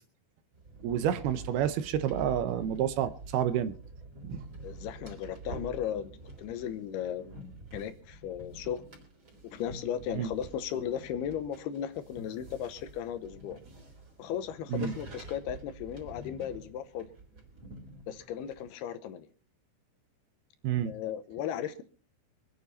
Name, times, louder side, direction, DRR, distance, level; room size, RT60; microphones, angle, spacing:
sound 1, 0.5-18.7, right 1 dB, 30° right, 4.4 m, -47 dB
voice 1, 0.8-3.8 4.2-4.4 10.2-10.3 14.7-14.9 20.6-20.9, right 10 dB, 75° right, 2.6 m, -29 dB
voice 2, 4.6-7.5 7.7-8.8 9.4-13.6 14.2-17.1 18.1-19.3 20.8-21.8, left 9 dB, 75° left, 2.8 m, -36 dB
25.0 x 9.5 x 4.2 m
omnidirectional pair, 4.9 m